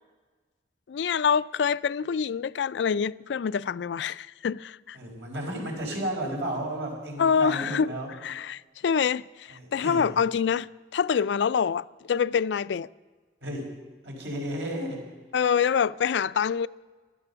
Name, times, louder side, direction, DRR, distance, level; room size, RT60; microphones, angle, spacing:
voice 1, 0.9-5.0 7.2-7.9 8.2-12.9 15.3-16.7, left 6 dB, 75° left, 0.4 m, -26 dB
voice 2, 4.9-8.1 9.5-10.1 13.4-13.8 14.0-15.0, right 1 dB, 80° right, 4.8 m, -33 dB
16.0 x 13.0 x 6.9 m
head